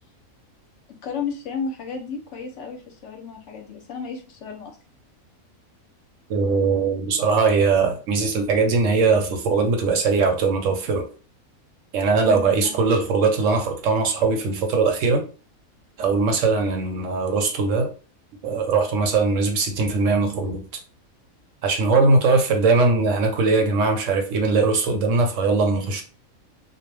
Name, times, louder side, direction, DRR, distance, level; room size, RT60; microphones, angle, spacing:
voice 1, 1.0-4.8 12.2-12.8, left 5 dB, 65° left, 3 dB, 0.8 m, -33 dB
voice 2, 6.3-11.1 11.9-15.3 16.0-17.9 18.4-20.8 21.6-26.0, right 4 dB, 70° right, 5 dB, 0.9 m, -20 dB
2.3 x 2.1 x 3.2 m, 0.36 s
omnidirectional pair, 1.5 m